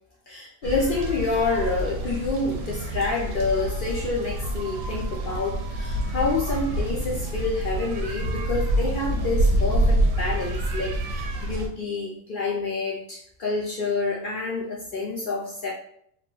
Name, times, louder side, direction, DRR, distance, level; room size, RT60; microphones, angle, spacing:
voice 1, 0.3-15.7, left 3 dB, 90° left, -3 dB, 0.4 m, -28 dB
sound 1, 0.6-11.7, right 1 dB, 75° right, 1.0 m, -27 dB
2.9 x 2.1 x 3.0 m, 0.68 s
omnidirectional pair, 1.5 m